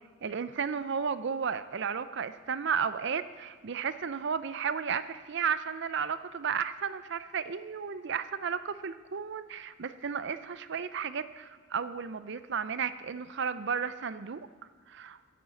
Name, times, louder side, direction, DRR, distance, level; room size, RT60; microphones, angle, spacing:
voice 1, 0.2-14.5 14.9-15.2, right 6 dB, 55° right, 13 dB, 0.5 m, -33 dB
10.5 x 8.8 x 8.5 m, 1.5 s
head